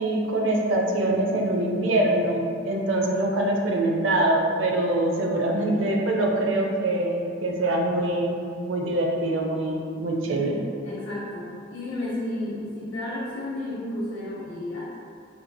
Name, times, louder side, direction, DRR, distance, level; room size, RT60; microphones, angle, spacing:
voice 1, 0.0-8.4 8.6-10.5, right 1 dB, 85° right, 0 dB, 0.5 m, -24 dB
voice 2, 10.2-14.9, left 1 dB, 80° left, -9 dB, 0.6 m, -32 dB
4.3 x 2.6 x 2.2 m, 2.4 s
head